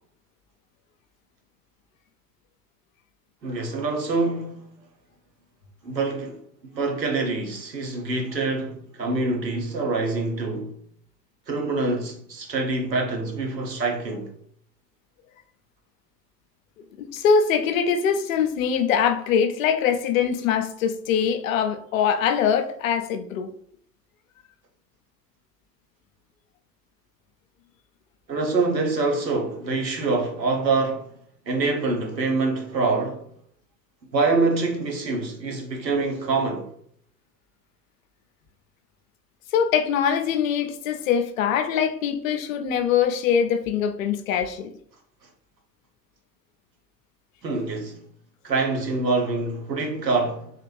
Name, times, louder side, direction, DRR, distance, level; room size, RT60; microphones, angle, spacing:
voice 1, 3.4-4.6 5.8-6.4 6.7-10.7 11.5-14.3 28.3-31.1 31.5-33.2 34.1-36.7 47.4-48.0 48.4-50.5, right 3 dB, 85° right, 0.9 m, -25 dB
voice 2, 17.0-23.5 39.5-44.7, left 7 dB, 55° left, 0.6 m, -23 dB
3.5 x 2.4 x 3.1 m
figure-of-eight pair, 85°, 49 cm